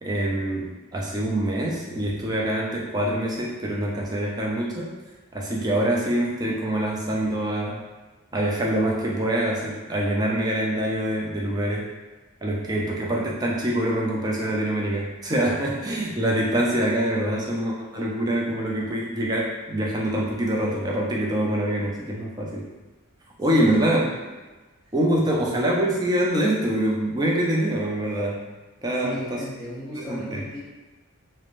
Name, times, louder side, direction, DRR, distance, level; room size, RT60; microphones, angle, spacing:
voice 1, 0.0-4.9 5.3-7.8 8.3-11.9 12.4-22.7 23.4-24.0 24.9-28.4 28.8-29.4 29.9-30.4, right 1 dB, 20° right, -2 dB, 0.4 m, -25 dB
voice 2, 23.5-24.2 24.8-24.9 25.3-25.6 29.0-30.6, equal, 5° left, -14 dB, 0.9 m, -36 dB
2.5 x 2.1 x 3.0 m, 1.2 s
head